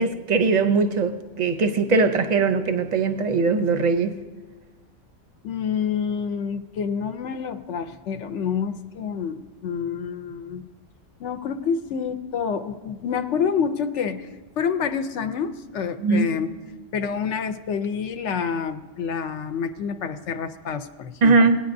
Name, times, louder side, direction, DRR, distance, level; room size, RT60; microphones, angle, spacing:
voice 1, 0.0-4.2 16.0-16.3 21.2-21.6, right 4 dB, 45° right, 9 dB, 0.6 m, -20 dB
voice 2, 5.4-10.6 11.2-14.3 14.6-16.5 16.9-21.4, left 6 dB, 75° left, 9 dB, 0.9 m, -28 dB
17.5 x 9.4 x 2.6 m, 1.3 s
omnidirectional pair, 1.3 m